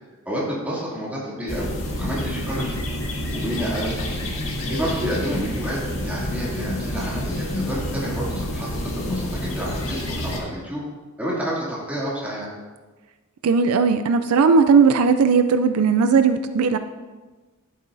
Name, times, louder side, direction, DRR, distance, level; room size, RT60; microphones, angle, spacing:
voice 1, 0.3-2.8 3.3-4.1 4.7-10.8 11.2-12.5, equal, 5° right, -7 dB, 2.5 m, -29 dB
sound 1, 1.5-10.4, left 1 dB, 65° left, 1.8 m, -28 dB
voice 2, 13.4-16.8, right 5 dB, 80° right, 10 dB, 0.4 m, -17 dB
11.0 x 8.4 x 2.6 m, 1.3 s
head